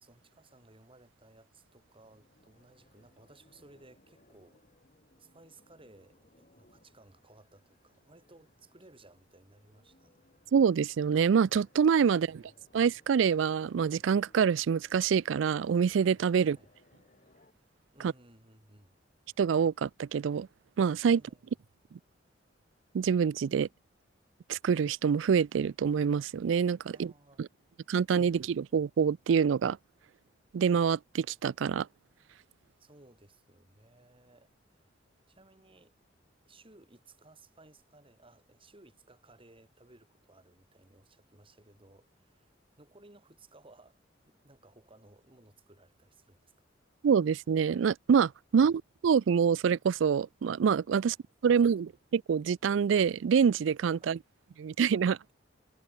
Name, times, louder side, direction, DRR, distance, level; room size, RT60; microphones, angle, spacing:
voice 1, 0.0-4.6 5.2-10.2 16.3-16.7 17.9-19.0 21.1-21.5 26.9-27.4 32.8-34.9 35.3-35.9 36.5-44.0 44.3-46.5 48.5-48.7 51.0-51.2 51.4-51.6 54.0-54.2, right 2 dB, 30° right, 4.3 m, -59 dB
sound 1, 1.7-17.5, left 1 dB, 45° left, 5.5 m, -66 dB
voice 2, 10.5-12.4 12.7-16.6 18.0-18.1 19.4-20.5 20.8-21.2 22.9-23.7 24.5-27.1 27.9-29.8 30.5-31.9 47.0-51.1 51.4-54.2 54.6-55.3, right 7 dB, 80° right, 0.4 m, -26 dB
head